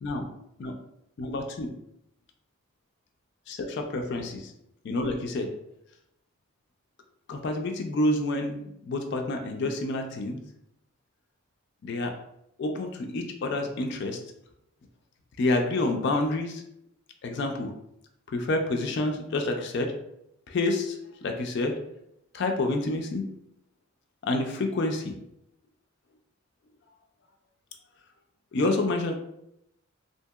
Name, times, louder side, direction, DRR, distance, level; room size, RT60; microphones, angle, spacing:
voice 1, 1.2-1.7 3.5-4.5 4.8-5.5 7.3-8.6 8.9-10.4 11.8-12.1 12.6-14.2 15.4-16.6 17.2-17.7 18.3-19.9 20.5-21.7 22.3-23.3 24.2-25.1 28.5-29.2, left 2 dB, 55° left, 4 dB, 0.3 m, -28 dB
2.7 x 2.7 x 2.3 m, 0.79 s
head